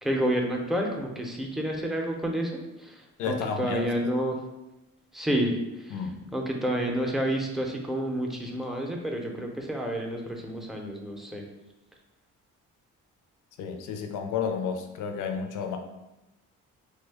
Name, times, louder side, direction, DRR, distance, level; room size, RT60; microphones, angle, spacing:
voice 1, 0.0-4.4 5.1-6.0 6.3-11.4, right 1 dB, ahead, 0 dB, 0.5 m, -29 dB
voice 2, 3.2-3.9 5.9-6.3 13.6-15.8, left 6 dB, 85° left, 4 dB, 0.5 m, -31 dB
3.2 x 2.2 x 3.3 m, 0.97 s
cardioid pair, 90°, 30 cm